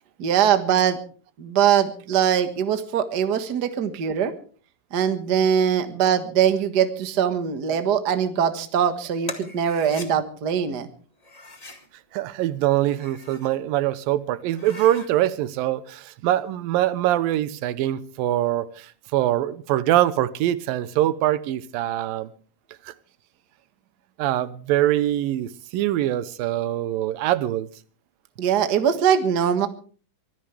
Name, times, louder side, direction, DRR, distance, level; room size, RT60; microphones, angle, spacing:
voice 1, 0.2-1.0 1.4-4.3 4.9-10.9 28.4-29.7, right 8 dB, 45° right, 1.4 m, -22 dB
sound 1, 9.2-10.1 11.2-11.9 12.8-13.5 14.0-14.1 14.5-15.1, left 2 dB, 20° left, 1.1 m, -40 dB
voice 2, 12.1-22.3 22.9-23.0 24.2-27.7, right 13 dB, 90° right, 2.7 m, -23 dB
24.0 x 15.5 x 3.4 m
omnidirectional pair, 3.9 m